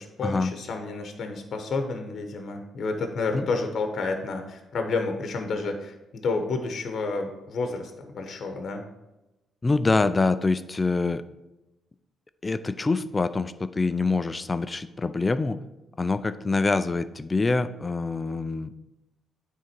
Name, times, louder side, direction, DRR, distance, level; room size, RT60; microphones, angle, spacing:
voice 1, 0.0-8.8, left 3 dB, 55° left, 5 dB, 1.0 m, -30 dB
voice 2, 9.6-11.2 12.4-15.6 16.0-18.7, left 3 dB, 25° left, 12 dB, 0.4 m, -25 dB
9.3 x 3.7 x 4.4 m, 0.98 s
cardioid pair, 90°, 0 cm